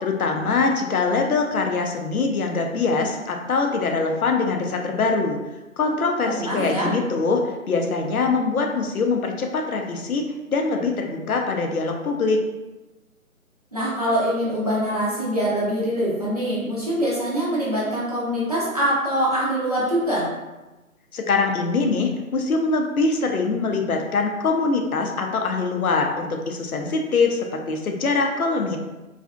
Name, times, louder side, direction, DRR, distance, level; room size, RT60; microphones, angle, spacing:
voice 1, 0.0-5.4 5.8-12.4 21.1-28.8, left 4 dB, 90° left, 3 dB, 0.6 m, -23 dB
voice 2, 6.2-6.9 13.7-20.3, equal, 30° right, -8 dB, 0.5 m, -24 dB
2.5 x 2.3 x 2.2 m, 1.1 s
figure-of-eight pair, 150°, 42 cm